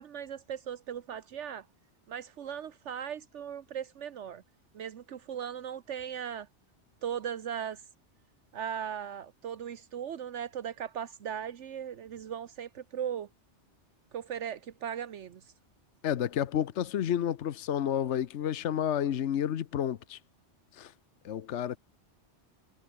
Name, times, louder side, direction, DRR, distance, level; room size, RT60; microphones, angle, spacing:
voice 1, 0.0-1.7 2.1-4.4 4.7-6.5 7.0-7.8 8.5-13.3 14.1-15.5, right 8 dB, 75° right, 1.2 m, -38 dB
voice 2, 16.0-20.2 20.7-20.9 21.2-21.8, left 10 dB, 75° left, 1.1 m, -30 dB
omnidirectional pair, 1.2 m